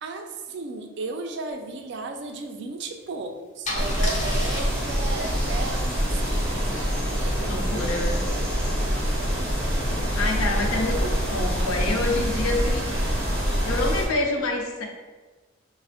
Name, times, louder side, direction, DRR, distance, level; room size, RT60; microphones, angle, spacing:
voice 1, 0.0-6.7, right 3 dB, 55° right, 4 dB, 0.3 m, -34 dB
Car / Engine starting / Idling, 2.9-3.1 3.6-7.5, left 2 dB, 35° left, 0.5 m, -36 dB
sound 1, 3.7-14.1, equal, 10° right, 0.6 m, -25 dB
voice 2, 7.5-8.2 10.1-12.9 13.6-14.9, left 2 dB, 90° left, 2 dB, 0.5 m, -27 dB
4.0 x 2.0 x 2.6 m, 1.3 s
head